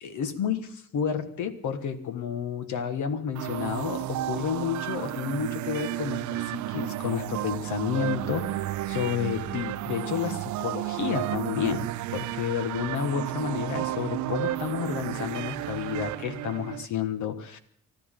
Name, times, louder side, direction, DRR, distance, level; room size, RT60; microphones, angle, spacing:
voice 1, 0.0-8.6 8.8-17.6, left 8 dB, 75° left, 9 dB, 1.7 m, -31 dB
sound 1, 3.3-16.9, right 15 dB, 75° right, 0.5 m, -32 dB
24.5 x 13.5 x 3.8 m, 0.65 s
cardioid pair, 90°, 30 cm